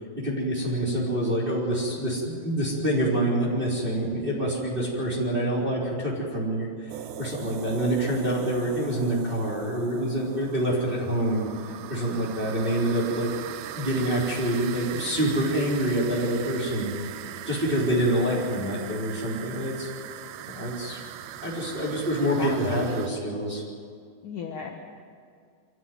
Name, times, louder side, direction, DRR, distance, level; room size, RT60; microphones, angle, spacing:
voice 1, 0.2-11.5 11.9-13.3 13.8-16.9 17.5-19.9 20.5-21.0 21.4-23.6, right 1 dB, 10° right, -5 dB, 3.6 m, -26 dB
sound 1, 6.9-23.1, right 11 dB, 85° right, 2.2 m, -40 dB
voice 2, 22.2-23.0 24.2-24.7, left 6 dB, 60° left, 2 dB, 2.2 m, -35 dB
24.0 x 14.5 x 9.4 m, 2.2 s
omnidirectional pair, 5.3 m